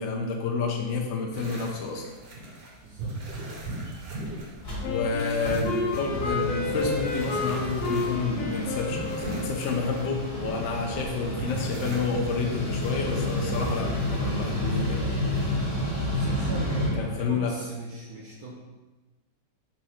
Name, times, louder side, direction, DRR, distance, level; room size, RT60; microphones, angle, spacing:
voice 1, 0.0-2.1 4.8-15.1 17.0-17.5, left 4 dB, 65° left, 0 dB, 0.7 m, -29 dB
sound 1, 1.3-15.5, right 1 dB, 50° right, 0.7 m, -38 dB
voice 2, 2.8-3.4 16.1-18.5, right 1 dB, 70° right, -2 dB, 1.0 m, -40 dB
Mechanical fan, 3.9-4.0 4.2-4.3 4.5-16.9, left 1 dB, 40° left, 1.4 m, -31 dB
Wind instrument woodwind instrument, 4.8-9.9, left 3 dB, 85° left, 1.3 m, -32 dB
4.2 x 2.4 x 4.2 m, 1.2 s
omnidirectional pair, 1.8 m